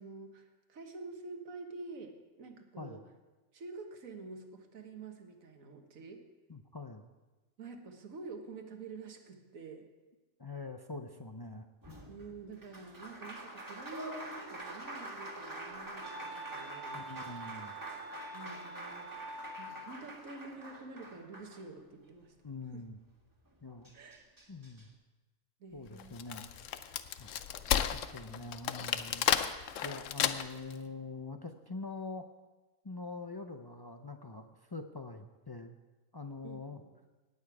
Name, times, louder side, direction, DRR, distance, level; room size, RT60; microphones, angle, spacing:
voice 1, 0.0-3.0 3.5-6.2 7.6-9.9 12.1-17.4 18.3-19.1 19.6-22.3 22.7-22.8 23.9-24.3 25.6-26.2 28.2-28.5 36.4-36.9, right 3 dB, 80° right, 5 dB, 1.7 m, -48 dB
voice 2, 6.5-7.0 10.4-12.0 16.9-17.8 22.4-23.0 23.6-23.9 24.5-24.9 25.7-26.5 27.2-27.5 27.9-29.3 29.8-32.3 32.8-35.7 36.1-36.8, left 3 dB, 35° left, 5 dB, 0.3 m, -44 dB
Applause, 11.8-22.1 23.5-23.6 23.8-24.9, right 1 dB, 15° right, 1.6 m, -46 dB
Wind instrument woodwind instrument, 14.8-20.1, right 2 dB, 40° right, 1.3 m, -48 dB
Wood, 26.0-30.7, left 10 dB, 75° left, 1.0 m, -32 dB
18.0 x 8.9 x 4.8 m, 1.2 s
omnidirectional pair, 1.4 m